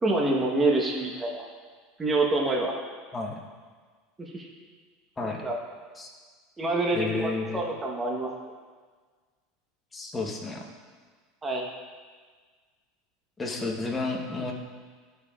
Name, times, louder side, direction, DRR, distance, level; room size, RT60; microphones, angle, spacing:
voice 1, 0.0-1.4 2.0-2.7 4.2-4.5 5.4-5.6 6.6-8.3 11.4-11.7, right 2 dB, 15° right, -1 dB, 1.1 m, -26 dB
voice 2, 5.2-5.5 6.0-6.1 6.9-7.7 9.9-10.6 13.4-14.5, left 3 dB, 15° left, 0 dB, 1.1 m, -31 dB
12.0 x 5.2 x 2.4 m, 1.5 s
supercardioid pair, 115°, 0 cm